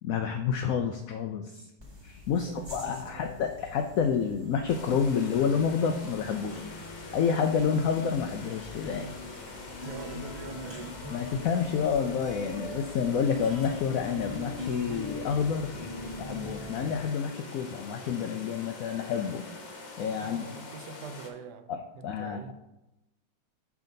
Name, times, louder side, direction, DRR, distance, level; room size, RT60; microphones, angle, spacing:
voice 1, 0.0-1.7 2.0-6.6 7.1-9.0 11.1-15.8 16.2-19.4 20.0-20.5 21.7-21.8 22.0-22.5, left 6 dB, 70° left, 5 dB, 0.8 m, -29 dB
sound 1, 1.8-16.9, left 2 dB, 15° right, 1.2 m, -43 dB
voice 2, 2.3-3.3 8.8-11.0 20.2-22.5, right 5 dB, 75° right, 9 dB, 1.1 m, -44 dB
sound 2, 4.7-21.3, left 3 dB, 90° left, 1.8 m, -45 dB
7.1 x 5.9 x 3.9 m, 0.95 s
omnidirectional pair, 1.9 m